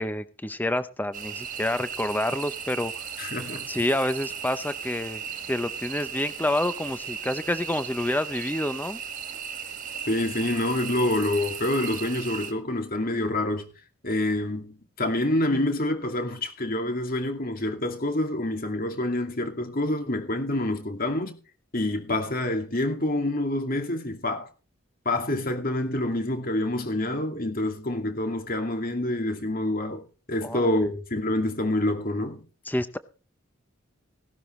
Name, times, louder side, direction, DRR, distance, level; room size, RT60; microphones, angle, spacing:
voice 1, 0.0-2.9 3.7-5.2 5.5-9.0 30.4-30.9 32.7-33.0, left 1 dB, 10° left, 0.7 m, -28 dB
sound 1, 1.1-12.5, right 7 dB, 40° right, 1.8 m, -36 dB
voice 2, 3.2-3.9 10.1-13.7 14.0-21.4 21.7-24.5 25.1-30.0 30.3-32.4, left 1 dB, 45° left, 2.4 m, -27 dB
17.0 x 12.5 x 3.2 m
head